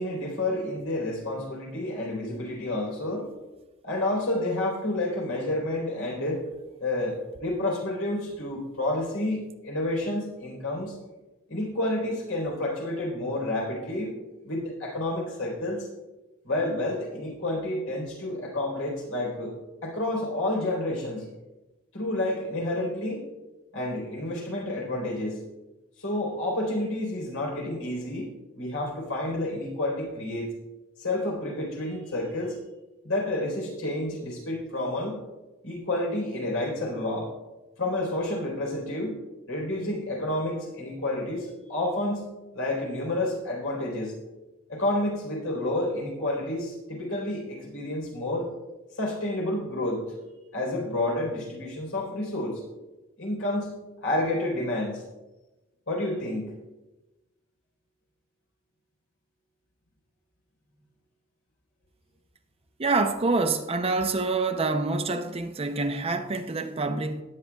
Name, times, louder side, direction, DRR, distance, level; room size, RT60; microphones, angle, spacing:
voice 1, 0.0-3.3 3.8-6.4 6.8-11.0 11.5-14.2 14.4-15.9 16.4-19.6 19.8-21.3 21.9-23.2 23.7-25.4 26.0-30.5 31.0-32.6 33.0-35.2 35.6-37.3 37.8-39.2 39.5-44.1 44.7-48.5 49.0-50.0 50.5-52.6 53.2-53.8 54.0-55.0 55.9-56.5, left 1 dB, 85° left, 4.0 m, -29 dB
voice 2, 62.8-67.2, right 3 dB, 30° right, 0.6 m, -26 dB
18.5 x 8.4 x 2.3 m
head